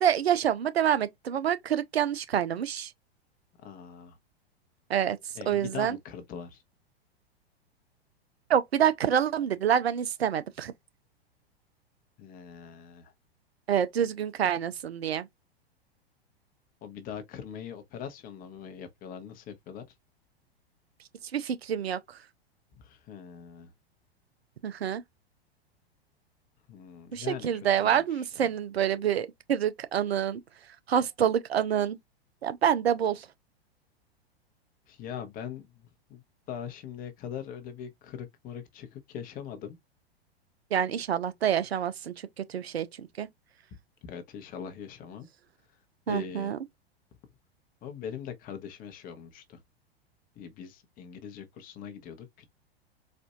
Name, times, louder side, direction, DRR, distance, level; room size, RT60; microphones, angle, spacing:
voice 1, 0.0-2.9 4.9-5.2 5.5-6.0 8.5-10.7 13.7-15.3 21.3-22.0 24.6-25.0 27.1-30.4 30.9-32.0 32.4-33.3 40.7-43.3 46.1-46.6, right 9 dB, 80° right, 0.5 m, -27 dB
voice 2, 3.6-4.2 5.3-6.6 12.2-13.1 16.8-19.8 22.7-23.7 26.7-28.5 34.9-36.2 36.5-39.8 44.0-45.3 46.1-46.5 47.8-49.6 50.4-52.5, left 8 dB, 30° left, 0.8 m, -41 dB
4.2 x 2.5 x 2.3 m
figure-of-eight pair, 100°, 31 cm